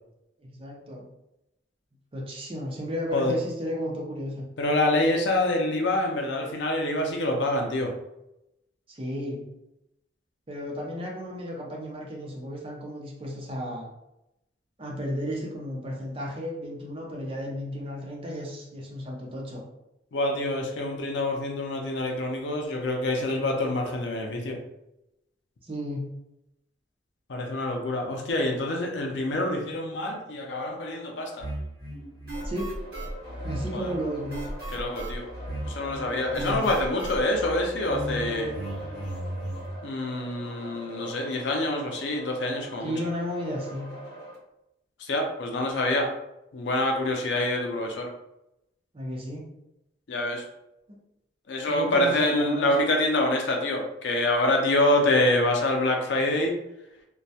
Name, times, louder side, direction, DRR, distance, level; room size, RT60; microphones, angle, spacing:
voice 1, 0.4-1.0 2.1-4.5 8.9-9.4 10.5-13.9 14.8-19.6 25.6-26.1 32.4-32.7 33.4-34.5 36.4-36.7 42.8-43.9 48.9-49.5 51.7-52.7, equal, 30° right, -2 dB, 0.5 m, -33 dB
voice 2, 4.6-7.9 20.1-24.6 27.3-31.5 33.7-33.9 34.7-35.2 35.7-38.5 39.8-42.9 45.0-46.1 46.5-48.1 50.1-50.4 51.5-56.5, left 1 dB, 70° left, 2 dB, 0.4 m, -26 dB
sound 1, 31.4-39.7, right 1 dB, 55° right, 0.9 m, -36 dB
sound 2, 32.3-44.4, right 1 dB, 55° left, 1.0 m, -43 dB
2.2 x 2.0 x 2.7 m, 0.87 s
head